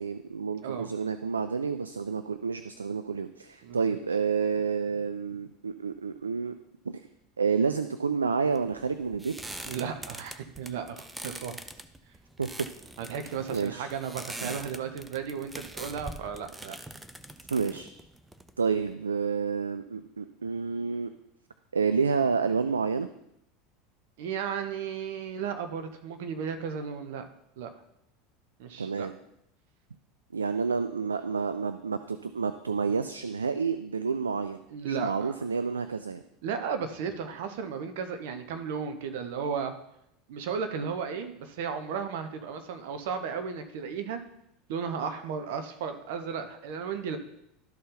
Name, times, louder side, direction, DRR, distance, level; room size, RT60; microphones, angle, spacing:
voice 1, 0.0-6.5 6.9-7.0 7.4-9.3 12.4-12.7 13.5-13.9 14.4-14.6 17.5-17.9 18.6-21.1 21.7-23.1 28.8-29.1 30.3-34.6 34.9-36.2, right 5 dB, 90° right, 10 dB, 0.3 m, -29 dB
sound 1, 8.5-18.9, right 1 dB, 10° right, 0.6 m, -43 dB
voice 2, 9.6-11.6 13.0-16.8 24.2-27.3 27.6-27.7 28.6-29.1 34.7-35.3 36.4-39.7 40.3-44.2 44.7-47.2, right 6 dB, 65° right, 8 dB, 0.9 m, -34 dB
12.5 x 4.3 x 3.9 m, 0.79 s
hypercardioid pair, 80°, 0 cm